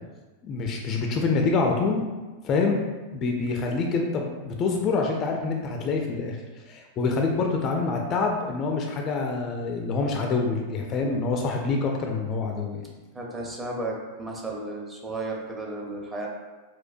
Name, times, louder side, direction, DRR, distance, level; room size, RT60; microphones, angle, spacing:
voice 1, 0.4-2.0 2.4-2.8 3.1-6.4 6.7-12.8, left 4 dB, 30° left, 2 dB, 0.3 m, -26 dB
voice 2, 13.1-16.3, right 2 dB, 15° right, -2 dB, 0.6 m, -33 dB
4.4 x 2.1 x 2.5 m, 1.2 s
figure-of-eight pair, 90°, 0 cm